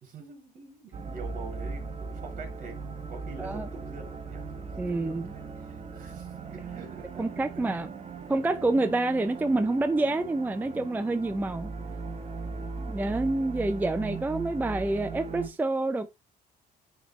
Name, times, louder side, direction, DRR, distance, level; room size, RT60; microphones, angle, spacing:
voice 1, 0.0-7.7 12.4-12.8, right 3 dB, 55° right, 2.9 m, -46 dB
sound 1, 0.9-15.5, right 4 dB, 35° right, 1.1 m, -39 dB
voice 2, 4.8-5.3 7.2-7.9 8.3-11.7 12.8-16.1, right 2 dB, 10° right, 0.4 m, -27 dB
9.9 x 3.4 x 3.0 m
cardioid pair, 110°, 17 cm